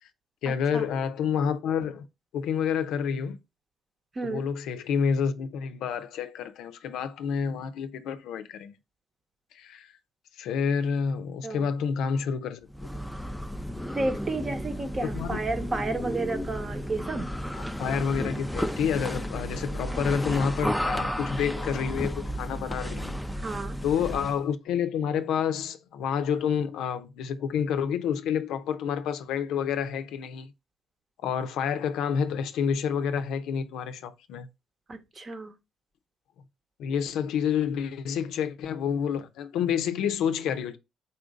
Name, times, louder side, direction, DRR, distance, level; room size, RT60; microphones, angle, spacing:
voice 1, 0.4-2.1 2.3-3.4 4.2-8.8 9.6-9.9 10.4-12.7 15.0-15.4 17.5-23.1 23.8-30.5 31.2-34.5 36.8-40.8, left 7 dB, 85° left, 0.5 m, -29 dB
sound 1, 12.7-24.4, equal, 5° left, 0.4 m, -33 dB
voice 2, 13.9-17.3 23.4-23.8 34.9-35.5, right 3 dB, 35° right, 0.9 m, -32 dB
4.2 x 2.6 x 4.8 m
cardioid pair, 90°, 0 cm